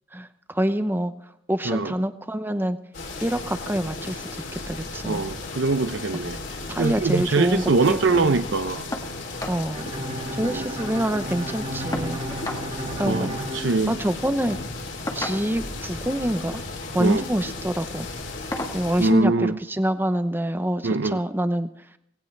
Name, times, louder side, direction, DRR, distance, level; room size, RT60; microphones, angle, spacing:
voice 1, 0.1-1.1 1.5-2.8 3.2-5.2 6.7-8.4 9.5-9.9 10.3-12.2 13.0-13.3 13.9-14.6 15.1-16.6 16.9-18.1 18.7-21.9, right 1 dB, 10° right, 10 dB, 0.7 m, -26 dB
sound 1, 2.9-19.1, left 3 dB, 65° left, 3.3 m, -35 dB
voice 2, 5.1-6.4 6.8-8.8 10.4-10.6 13.0-14.0 17.0-17.2 19.0-19.6 20.8-21.2, right 3 dB, 65° right, 9 dB, 0.6 m, -23 dB
sound 2, 8.9-9.1 9.4-9.6 10.0-10.1 10.4-11.1 11.9-12.7 13.9-14.1 15.1-15.7 16.8-17.1 17.5-17.7 18.5-18.8 20.1-20.2 20.7-20.8, left 1 dB, 15° left, 1.5 m, -34 dB
Bowed string instrument, 9.7-14.6, right 1 dB, 30° right, 1.5 m, -34 dB
18.5 x 17.5 x 3.3 m, 0.71 s
head